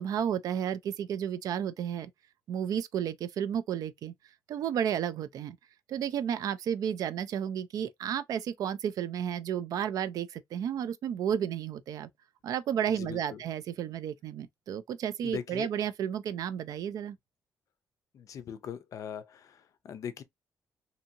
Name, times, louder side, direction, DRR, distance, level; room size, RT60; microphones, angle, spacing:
voice 1, 0.0-2.1 2.5-4.1 4.5-5.6 5.9-12.1 12.4-17.2, right 9 dB, 65° right, 0.4 m, -32 dB
voice 2, 12.9-13.4 15.2-15.8 18.1-20.2, left 8 dB, 55° left, 0.4 m, -41 dB
2.7 x 2.7 x 2.5 m
cardioid pair, 150°, 7 cm